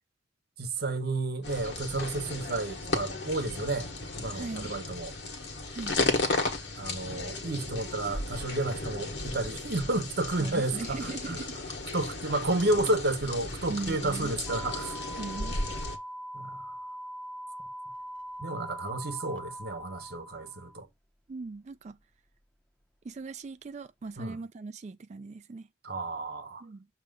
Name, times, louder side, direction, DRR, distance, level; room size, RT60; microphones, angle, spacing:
voice 1, 0.6-3.9 4.2-5.1 6.8-11.4 11.9-15.0 16.3-16.7 18.4-20.9 24.2-24.4 25.8-26.6, right 2 dB, 55° right, 1.0 m, -31 dB
sound 1, 1.4-16.0, left 2 dB, 65° left, 1.4 m, -35 dB
voice 2, 4.3-4.7 5.7-6.0 10.4-11.6 13.7-14.4 15.1-15.6 21.3-22.0 23.0-25.7 26.6-26.9, right 3 dB, 40° right, 0.4 m, -39 dB
sound 2, 14.5-20.8, equal, 5° left, 0.6 m, -42 dB
6.6 x 3.0 x 5.2 m
head